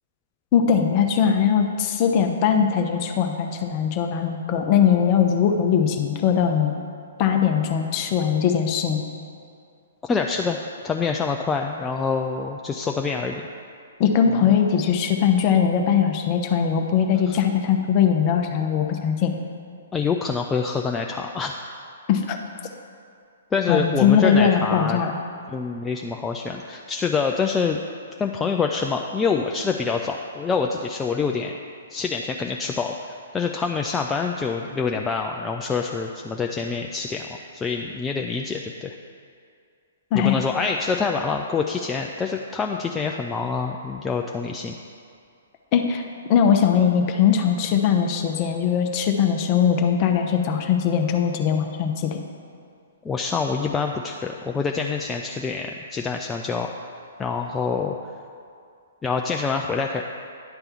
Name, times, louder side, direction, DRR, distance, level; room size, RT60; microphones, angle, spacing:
voice 1, 0.5-6.7 7.2-9.0 14.0-19.3 22.1-22.4 23.7-25.2 40.1-40.4 45.7-46.0 46.3-52.2, left 7 dB, 30° left, 4 dB, 0.7 m, -20 dB
voice 2, 10.1-10.6 10.8-13.4 14.5-14.6 17.3-17.4 19.9-21.5 23.5-25.0 25.5-27.8 28.2-31.5 31.9-32.9 33.3-37.3 37.5-38.9 40.1-44.7 53.0-56.7 57.2-58.0 59.0-60.0, left 5 dB, 10° left, 1 dB, 0.3 m, -26 dB
10.0 x 3.4 x 7.0 m, 2.4 s
figure-of-eight pair, 120°, 0 cm